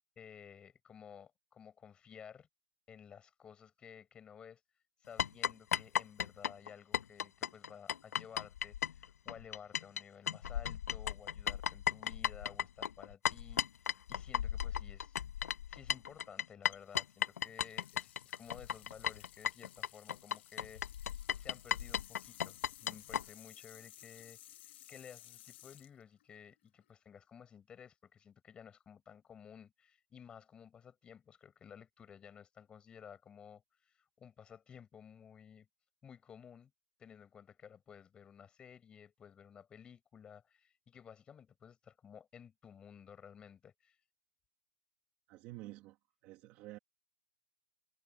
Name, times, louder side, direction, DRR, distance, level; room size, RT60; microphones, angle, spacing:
voice 1, 0.2-2.5 2.9-4.6 5.0-15.2 15.4-20.8 21.4-24.4 24.9-35.7 36.0-36.7 37.0-44.0, left 7 dB, 10° left, 7.5 m, -55 dB
sound 1, 5.2-10.0 10.3-23.2, left 9 dB, 50° left, 1.1 m, -36 dB
sound 2, 16.7-26.9, left 14 dB, 35° left, 1.6 m, -58 dB
voice 2, 45.3-46.0 46.2-46.8, right 18 dB, 20° right, 1.5 m, -49 dB
hypercardioid pair, 175°, 10 cm